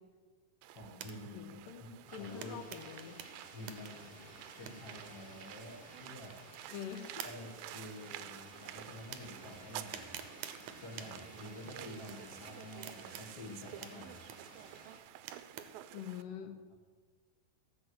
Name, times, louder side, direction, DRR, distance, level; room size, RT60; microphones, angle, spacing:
sound 1, 0.6-16.2, right 13 dB, 85° right, 2.4 m, -51 dB
voice 1, 0.7-1.9 2.2-2.6 3.5-4.2 4.6-6.3 7.2-14.2 16.4-16.5, left 1 dB, 40° left, -3 dB, 1.6 m, -49 dB
sound 2, 0.7-15.8, right 9 dB, 70° right, 1.9 m, -53 dB
voice 2, 1.3-1.8 2.1-3.2 6.7-7.1 15.9-16.6, left 8 dB, 70° left, 7 dB, 2.6 m, -44 dB
sound 3, 2.1-15.0, right 2 dB, 30° right, 0.8 m, -56 dB
14.5 x 6.2 x 7.8 m, 1.4 s
omnidirectional pair, 4.1 m